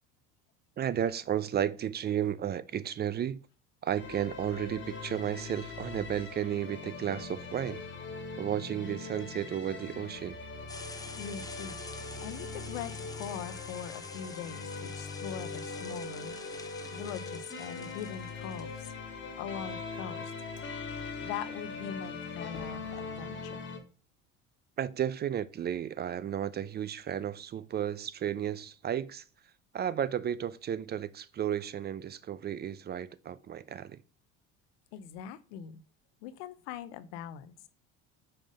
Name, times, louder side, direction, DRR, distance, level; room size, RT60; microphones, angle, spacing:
voice 1, 0.8-3.4 3.8-7.8 8.4-10.4 16.9-17.1 24.8-29.2 29.7-34.0, right 10 dB, 30° right, 0.4 m, -33 dB
sound 1, 4.0-23.8, left 4 dB, 35° left, 1.5 m, -41 dB
sound 2, 10.7-18.9, left 3 dB, 10° left, 0.7 m, -48 dB
voice 2, 11.2-11.8 12.2-18.9 19.4-20.6 21.2-23.6 34.9-35.8 36.2-37.5, left 9 dB, 80° left, 0.7 m, -42 dB
5.5 x 3.5 x 5.2 m
supercardioid pair, 80°, 33 cm